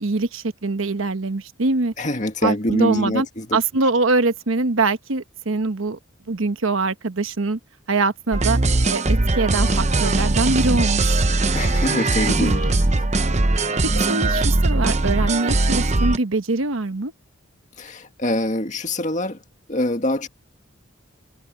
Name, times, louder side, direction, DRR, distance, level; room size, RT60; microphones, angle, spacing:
voice 1, 0.0-1.9 2.4-3.3 3.5-6.0 6.3-7.6 7.9-8.6 8.9-11.3 12.4-12.6 13.8-17.1, right 3 dB, 85° right, 1.1 m, -23 dB
voice 2, 2.0-3.6 11.5-12.7 17.8-19.4 19.7-20.3, left 1 dB, 35° left, 2.0 m, -24 dB
sound 1, 8.3-16.2, right 2 dB, 35° right, 0.8 m, -20 dB
head